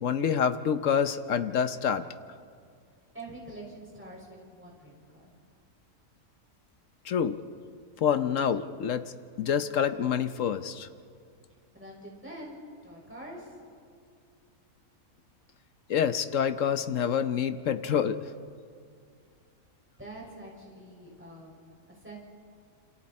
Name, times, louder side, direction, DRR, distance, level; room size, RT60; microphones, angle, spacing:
voice 1, 0.0-2.0 7.0-7.4 8.0-9.0 9.4-10.9 15.9-18.2, left 8 dB, 65° left, 10 dB, 1.1 m, -27 dB
voice 2, 3.1-5.3 11.7-12.6 12.8-13.6 20.0-22.2, right 1 dB, 10° right, -4 dB, 5.9 m, -45 dB
28.0 x 27.0 x 4.3 m, 2.2 s
omnidirectional pair, 1.6 m